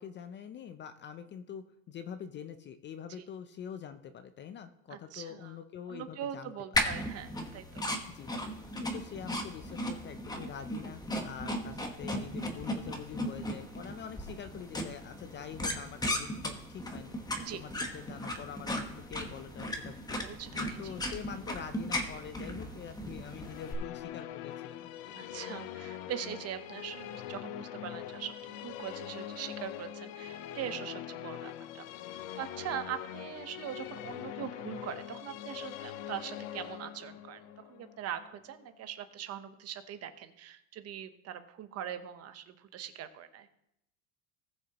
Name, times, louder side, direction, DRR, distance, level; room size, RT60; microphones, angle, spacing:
voice 1, 0.0-6.5 8.1-8.3 8.8-17.1 17.5-20.2 20.8-25.2, left 8 dB, 30° left, 10 dB, 0.5 m, -45 dB
voice 2, 4.9-5.6 5.9-7.8 11.4-11.8 17.4-17.6 20.2-21.0 25.1-31.9 32.3-43.5, right 10 dB, 35° right, 10 dB, 0.9 m, -42 dB
sound 1, 6.7-23.7, left 1 dB, 10° left, 1.2 m, -37 dB
Musical instrument, 23.2-38.6, left 12 dB, 75° left, 0.8 m, -43 dB
19.0 x 6.5 x 2.9 m, 0.80 s
supercardioid pair, 130°, 41 cm